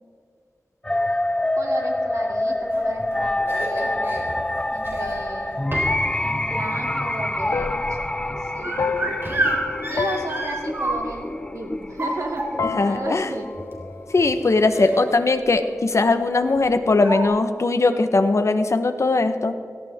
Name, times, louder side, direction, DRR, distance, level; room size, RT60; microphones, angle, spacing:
sound 1, 0.8-14.8, left 1 dB, 15° left, 0.5 m, -27 dB
voice 1, 1.5-4.4 4.7-5.6 6.2-9.5 9.9-12.5 12.9-13.5, right 2 dB, 80° right, 0 dB, 2.8 m, -34 dB
sound 2, 2.7-4.2 4.8-5.3 5.7-6.1 6.4-11.3 11.8-12.9 13.7-13.8 14.1-14.3 14.7-15.1 15.4-15.6 16.6-16.7 17.0-17.2, right 2 dB, 45° right, 4.3 m, -29 dB
sound 3, 3.4-12.3 12.6-14.6, left 5 dB, 85° left, 0.6 m, -33 dB
voice 2, 12.6-13.3 14.1-19.5, left 3 dB, 60° left, 8 dB, 1.1 m, -20 dB
17.0 x 16.5 x 3.6 m, 2.2 s
wide cardioid pair, 70°, 6 cm